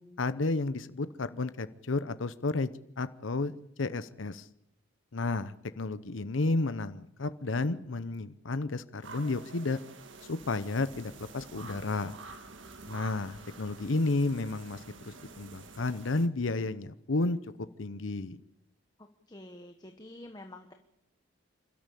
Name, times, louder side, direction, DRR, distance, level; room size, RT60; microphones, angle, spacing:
voice 1, 0.2-2.7 3.0-4.5 5.1-9.8 10.3-12.2 12.9-17.4 17.8-18.4, left 3 dB, 80° left, 13 dB, 0.8 m, -32 dB
sound 1, 9.0-16.3, right 3 dB, 70° right, 1.7 m, -49 dB
voice 2, 19.0-20.7, left 1 dB, 20° left, 5 dB, 1.2 m, -48 dB
28.0 x 13.0 x 8.3 m, 0.81 s
head